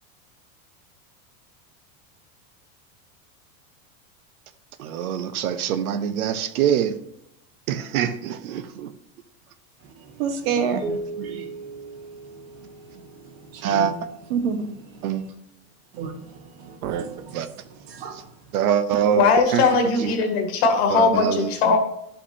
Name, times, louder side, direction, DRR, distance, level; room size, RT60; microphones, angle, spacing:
voice 1, 4.8-7.0 7.7-8.9 13.6-13.9 15.0-15.2 16.8-17.5 18.1-18.2 18.5-19.2 19.5-19.6 20.0-20.2 20.9-21.8, right 9 dB, 80° right, 0.9 m, -24 dB
voice 2, 9.8-13.9 14.3-15.1 15.9-18.3 19.5-19.6, right 6 dB, 45° right, 1.1 m, -31 dB
Keyboard (musical), 10.8-13.8, right 3 dB, 20° right, 1.0 m, -36 dB
voice 3, 19.1-21.8, left 4 dB, 45° left, 1.7 m, -19 dB
11.5 x 5.7 x 2.8 m
supercardioid pair, 180°, 43 cm